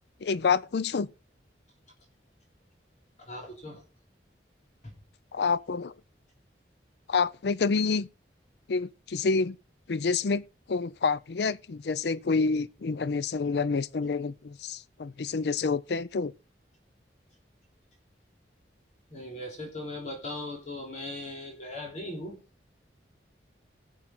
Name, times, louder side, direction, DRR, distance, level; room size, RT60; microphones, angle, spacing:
voice 1, 0.2-1.1 5.3-5.9 7.1-8.1 8.7-9.6 9.9-10.4 10.7-16.3, left 4 dB, 65° left, 0.5 m, -28 dB
voice 2, 3.2-3.8 4.8-4.9 19.1-22.4, left 1 dB, 40° left, 3.3 m, -39 dB
16.5 x 7.5 x 3.8 m
head